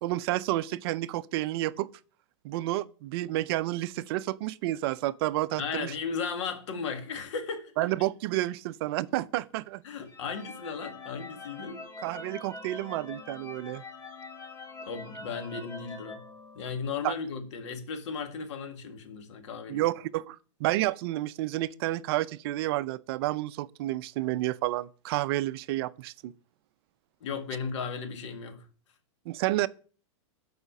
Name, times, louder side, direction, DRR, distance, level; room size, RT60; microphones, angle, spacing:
voice 1, 0.0-1.9 2.4-5.9 7.8-9.8 12.0-13.8 17.0-17.1 19.7-26.3 29.3-29.7, right 16 dB, 50° right, 0.4 m, -30 dB
voice 2, 5.6-7.7 9.8-11.8 14.9-16.2 16.5-19.8 27.2-28.7, left 5 dB, 70° left, 1.9 m, -35 dB
sound 1, 10.1-17.1, left 3 dB, 20° left, 1.7 m, -44 dB
8.1 x 5.0 x 6.6 m
hypercardioid pair, 115°, 16 cm